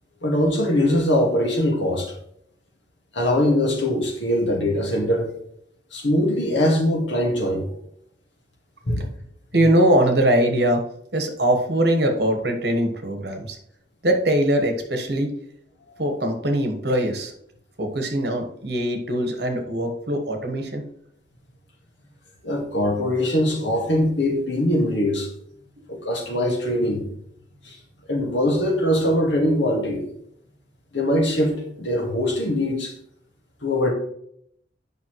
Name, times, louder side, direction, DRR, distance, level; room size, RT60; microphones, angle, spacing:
voice 1, 0.2-2.1 3.1-5.4 5.9-7.7 8.9-9.1 15.9-16.0 22.4-25.3 25.9-27.0 27.6-27.8 28.1-30.0 30.9-32.9 33.6-33.9, left 1 dB, 80° left, 1 dB, 1.9 m, -22 dB
voice 2, 9.5-10.8 11.1-13.6 14.0-15.3 16.0-17.3 17.8-20.8 25.8-25.9, right 1 dB, 60° right, 4 dB, 1.3 m, -22 dB
8.6 x 5.6 x 3.1 m, 0.70 s
head